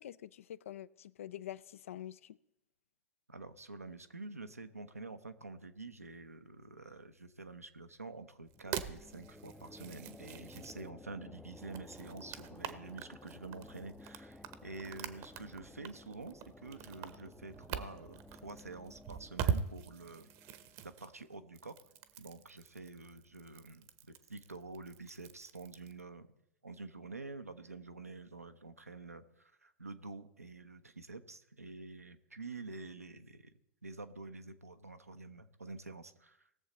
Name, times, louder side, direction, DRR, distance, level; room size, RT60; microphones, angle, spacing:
voice 1, 0.0-2.4, left 12 dB, 65° left, 0.4 m, -46 dB
voice 2, 3.3-20.3 20.8-21.8 22.2-26.3 26.6-33.5 33.8-36.5, right 3 dB, 90° right, 0.8 m, -48 dB
sound 1, 8.5-21.9, left 2 dB, 5° left, 0.5 m, -55 dB
sound 2, 8.5-10.9 11.5-26.0, right 8 dB, 45° right, 0.9 m, -43 dB
19.5 x 7.2 x 4.1 m
figure-of-eight pair, 95°, 8 cm